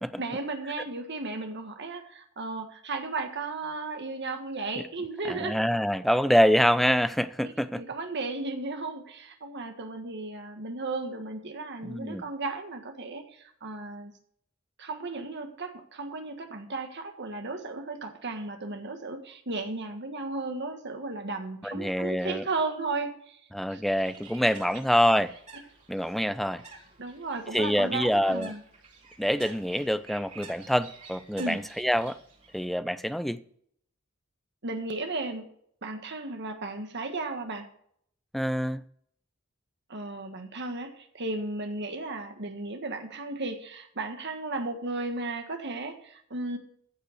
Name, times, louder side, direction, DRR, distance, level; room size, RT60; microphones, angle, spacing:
voice 1, 0.2-5.6 7.4-14.1 14.8-23.4 23.7-23.8 27.0-28.6 31.4-31.6 34.6-35.5 35.8-37.7 39.9-46.6, right 3 dB, 55° right, 1.6 m, -35 dB
voice 2, 5.2-7.8 11.8-12.2 21.6-22.4 23.5-25.3 25.9-26.6 27.5-28.5 29.2-32.2 32.5-33.4 38.3-38.8, equal, ahead, 0.5 m, -25 dB
Bird, 23.8-32.7, right 4 dB, 35° right, 3.4 m, -50 dB
15.0 x 5.5 x 6.4 m
head